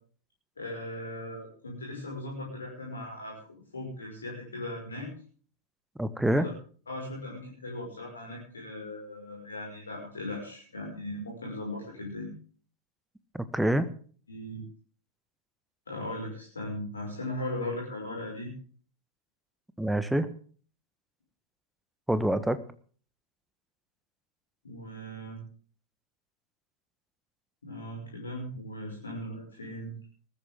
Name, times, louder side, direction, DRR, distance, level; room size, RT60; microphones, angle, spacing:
voice 1, 0.6-3.4 3.7-5.1 6.3-6.5 6.9-12.3 14.3-14.6 15.9-18.5 24.6-25.4 27.6-29.9, left 1 dB, 75° left, -1 dB, 5.9 m, -38 dB
voice 2, 5.9-6.5 13.3-13.9 19.8-20.3 22.1-22.6, right 1 dB, 5° right, 12 dB, 1.4 m, -26 dB
20.5 x 14.0 x 3.8 m, 0.43 s
figure-of-eight pair, 90°, 0 cm